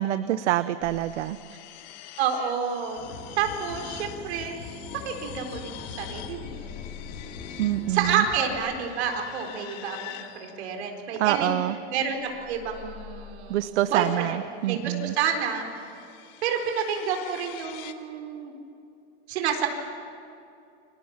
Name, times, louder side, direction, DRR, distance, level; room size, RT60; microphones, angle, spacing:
voice 1, 0.0-1.4 7.6-8.3 11.2-11.8 13.5-15.1, right 13 dB, 80° right, 12 dB, 0.9 m, -26 dB
sound 1, 0.8-11.0 12.0-13.8 15.0-17.9, left 12 dB, 35° left, 1.3 m, -45 dB
voice 2, 2.2-3.0 3.4-4.5 4.9-6.7 7.9-11.6 11.9-14.4 14.6-15.6 16.4-18.5 19.3-19.7, right 7 dB, 65° right, 4 dB, 4.3 m, -29 dB
sound 2, 3.0-8.5, left 5 dB, 75° left, 6.0 m, -41 dB
30.0 x 25.0 x 7.4 m, 2.6 s
supercardioid pair, 175°, 35 cm